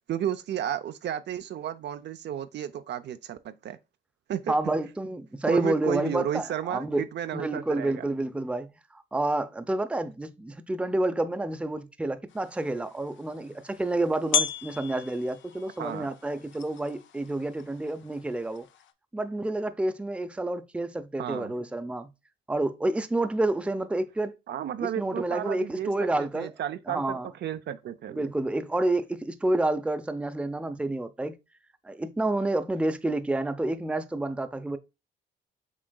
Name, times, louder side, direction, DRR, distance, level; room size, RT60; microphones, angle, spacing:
voice 1, 0.1-3.8 4.3-4.5 5.5-8.0 15.8-16.1 21.2-21.5 24.5-28.3, right 10 dB, 60° right, 0.5 m, -33 dB
voice 2, 4.5-7.1 7.3-18.7 19.1-22.1 22.5-24.3 24.8-26.5 26.9-27.3 28.1-31.4 31.8-34.8, right 2 dB, 5° right, 0.5 m, -29 dB
sound 1, 12.3-18.9, left 7 dB, 70° left, 0.6 m, -36 dB
6.2 x 3.7 x 2.2 m
cardioid pair, 90°, 20 cm